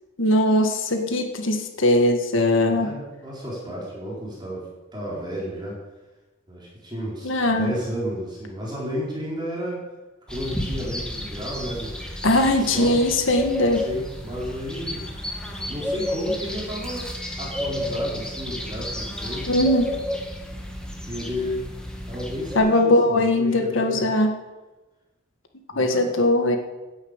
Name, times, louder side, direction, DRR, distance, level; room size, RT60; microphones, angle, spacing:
voice 1, 0.2-2.9 7.2-7.7 12.2-13.8 19.5-19.9 22.6-24.3 25.8-26.6, left 1 dB, 70° left, 4 dB, 1.9 m, -20 dB
voice 2, 2.7-5.8 6.5-9.8 10.3-12.0 12.4-13.0 13.7-15.1 15.7-17.1 17.4-19.6 21.1-21.7 22.0-24.1 25.7-26.1, equal, 20° right, -5 dB, 4.2 m, -32 dB
sound 1, 10.3-22.6, left 1 dB, 5° left, 1.9 m, -32 dB
10.5 x 9.6 x 8.2 m, 1.1 s
head